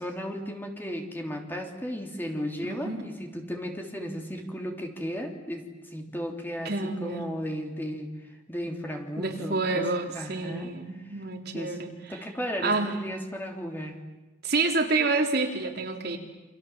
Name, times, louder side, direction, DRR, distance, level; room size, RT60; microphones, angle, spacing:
voice 1, 0.0-9.8 10.1-10.7 11.0-11.2 11.5-11.8 12.1-13.9, equal, 10° left, 2 dB, 3.3 m, -35 dB
voice 2, 2.6-3.0 6.6-7.3 9.2-11.9 12.6-12.9 14.4-16.2, right 3 dB, 60° right, 2 dB, 3.3 m, -28 dB
29.0 x 26.5 x 7.4 m, 1.1 s
head